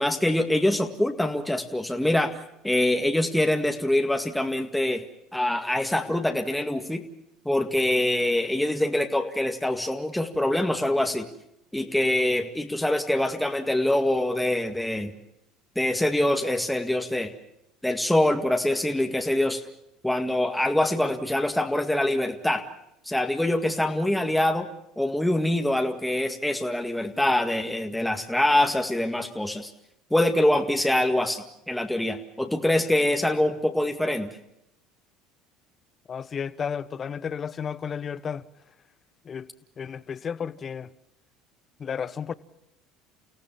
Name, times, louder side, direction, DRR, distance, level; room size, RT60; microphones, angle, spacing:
voice 1, 0.0-2.3 2.6-5.0 5.3-7.0 7.5-11.3 11.7-15.1 15.8-17.3 17.8-19.6 20.0-22.6 23.1-24.7 25.0-29.7 30.1-34.3, left 1 dB, 5° left, 2.0 m, -24 dB
voice 2, 36.1-38.4 39.2-39.5 39.8-40.9 41.8-42.3, left 7 dB, 40° left, 1.1 m, -32 dB
30.0 x 16.5 x 7.3 m
hypercardioid pair, 70°, 0 cm